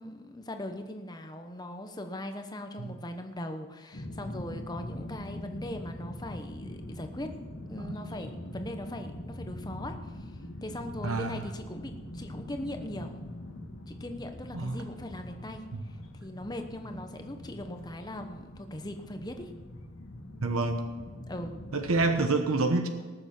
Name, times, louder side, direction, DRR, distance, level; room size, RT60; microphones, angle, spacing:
voice 1, 0.0-7.4 7.7-13.2 13.9-19.5 21.3-21.7, left 1 dB, 20° left, 6 dB, 0.9 m, -40 dB
sound 1, 3.9-22.3, left 1 dB, 80° left, 1.6 m, -43 dB
voice 2, 11.0-11.5 14.5-14.8 15.7-15.8 20.4-20.8 21.7-22.9, right 3 dB, 90° right, 6 dB, 1.1 m, -28 dB
19.0 x 7.0 x 6.0 m, 1.4 s
head